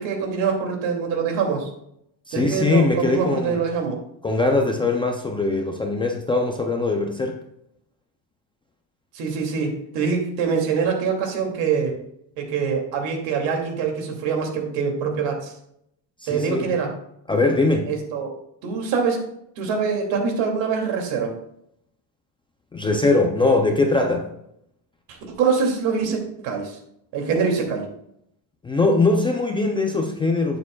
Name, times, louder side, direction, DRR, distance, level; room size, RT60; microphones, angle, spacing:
voice 1, 0.0-1.7 2.3-4.0 9.1-12.0 12.4-15.5 16.3-16.9 17.9-18.3 18.6-19.2 19.6-21.3 25.1-26.8 27.1-27.9, right 5 dB, 75° right, 2 dB, 2.5 m, -24 dB
voice 2, 2.3-3.6 4.2-7.4 16.2-16.7 17.3-17.9 22.7-24.3 28.6-30.6, left 3 dB, 10° left, 2 dB, 0.3 m, -21 dB
11.5 x 8.6 x 2.3 m, 0.75 s
cardioid pair, 175°, 45 cm